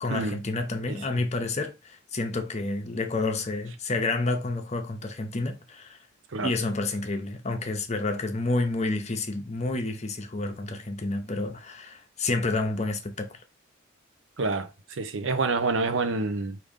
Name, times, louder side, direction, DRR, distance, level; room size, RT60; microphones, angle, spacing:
voice 1, 0.0-6.0 6.4-13.4, left 2 dB, 35° left, 0.7 m, -29 dB
voice 2, 14.4-16.6, right 3 dB, 65° right, 0.6 m, -28 dB
5.0 x 2.6 x 3.6 m
head